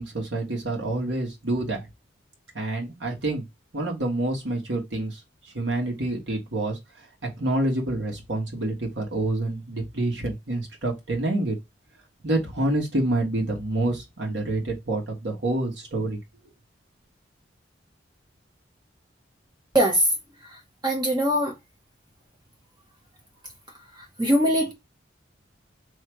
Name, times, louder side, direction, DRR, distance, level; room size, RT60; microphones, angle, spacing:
voice 1, 0.0-1.8 2.5-3.4 3.7-6.8 7.2-11.5 12.2-16.2, right 2 dB, 80° right, 1.4 m, -27 dB
voice 2, 20.8-21.5 24.2-24.7, equal, 25° right, 1.1 m, -21 dB
3.2 x 2.8 x 4.5 m
head